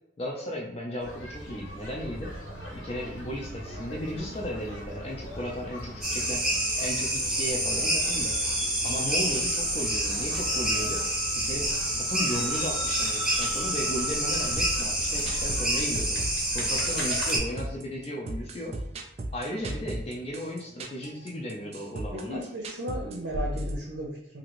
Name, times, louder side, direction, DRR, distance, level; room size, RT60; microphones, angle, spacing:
voice 1, 0.2-2.3 2.7-6.5 6.7-8.3 8.8-11.0 11.3-16.2 16.5-18.8 19.3-22.4, equal, 30° left, -2 dB, 0.4 m, -35 dB
sound 1, 1.0-17.3, equal, 90° left, 1.0 m, -40 dB
sound 2, 6.0-17.4, right 1 dB, 5° right, 0.7 m, -28 dB
sound 3, 13.1-23.8, right 1 dB, 35° right, 0.3 m, -37 dB
voice 2, 22.1-24.4, right 1 dB, 70° right, -2 dB, 0.7 m, -35 dB
2.9 x 2.5 x 3.0 m, 0.79 s
head